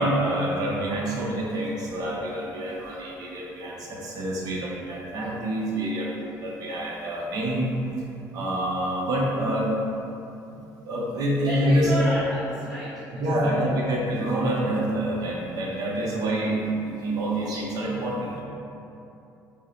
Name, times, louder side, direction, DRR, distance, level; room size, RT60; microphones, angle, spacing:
voice 1, 0.0-7.7 8.3-9.7 10.8-12.1 13.2-18.4, right 1 dB, 60° right, -3 dB, 0.8 m, -27 dB
voice 2, 11.4-13.7, left 1 dB, 5° left, -7 dB, 0.5 m, -32 dB
4.5 x 2.2 x 3.2 m, 2.8 s
cardioid pair, 95°, 7 cm